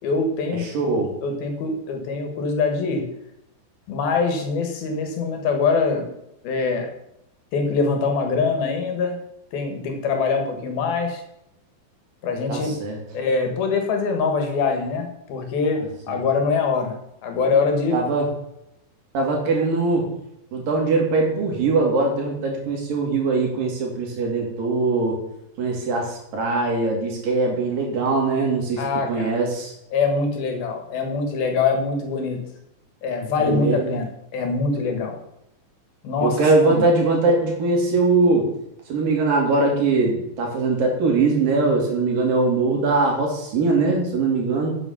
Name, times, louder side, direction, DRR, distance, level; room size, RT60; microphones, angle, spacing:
voice 1, 0.0-0.6 1.2-3.0 3.9-6.1 6.4-6.9 7.5-9.2 9.5-11.2 12.2-12.7 13.1-17.0 17.2-18.0 28.8-29.3 29.9-32.4 33.0-34.1 34.3-35.2 36.0-36.8, left 4 dB, 75° left, 4 dB, 3.6 m, -23 dB
voice 2, 0.6-1.1 12.5-13.0 16.1-16.2 17.9-18.3 19.1-20.1 20.5-25.2 25.6-28.8 29.1-29.7 33.4-33.9 36.2-38.5 38.9-44.8, right 3 dB, 65° right, 0 dB, 4.3 m, -21 dB
9.3 x 7.9 x 7.3 m, 0.82 s
omnidirectional pair, 4.4 m